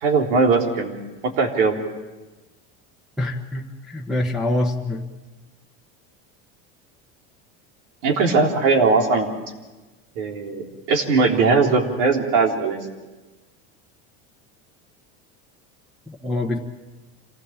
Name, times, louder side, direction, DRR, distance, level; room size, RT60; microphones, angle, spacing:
voice 1, 0.0-1.0 1.4-1.8 8.0-9.3 10.2-12.8, right 4 dB, 90° right, 1 dB, 3.7 m, -19 dB
voice 2, 3.2-5.1 16.1-16.6, left 1 dB, ahead, -4 dB, 1.2 m, -25 dB
27.0 x 16.5 x 7.4 m, 1.2 s
cardioid pair, 150°, 35 cm